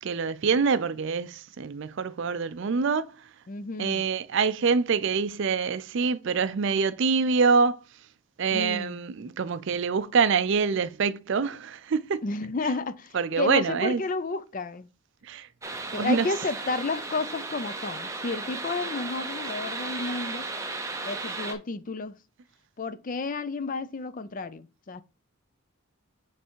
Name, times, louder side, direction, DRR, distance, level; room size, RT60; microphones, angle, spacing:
voice 1, 0.0-3.2 3.8-7.8 8.4-12.2 13.1-14.0 15.2-15.5 15.9-16.3, right 5 dB, 55° right, 0.4 m, -25 dB
voice 2, 3.5-4.1 8.5-9.3 12.2-14.9 15.9-20.5 21.0-22.2 22.8-25.0, left 3 dB, 35° left, 0.4 m, -32 dB
sound 1, 15.6-21.6, right 3 dB, 15° right, 0.7 m, -35 dB
7.0 x 3.3 x 4.5 m
head